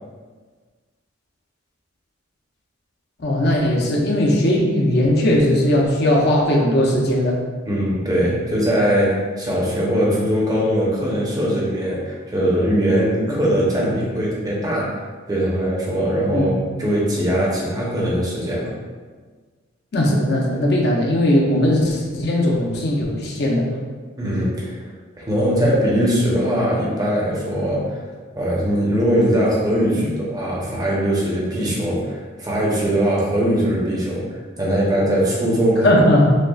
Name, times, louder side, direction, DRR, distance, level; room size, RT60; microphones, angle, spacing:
voice 1, 3.2-7.4 13.3-13.4 16.3-16.5 19.9-23.7 29.9-30.1 35.8-36.4, left 1 dB, 55° left, -2 dB, 0.7 m, -18 dB
voice 2, 7.7-14.9 15.3-16.5 16.8-18.7 24.2-24.9 25.2-28.0 28.3-35.9, equal, 20° right, -5 dB, 0.8 m, -21 dB
6.3 x 2.3 x 2.4 m, 1.5 s
head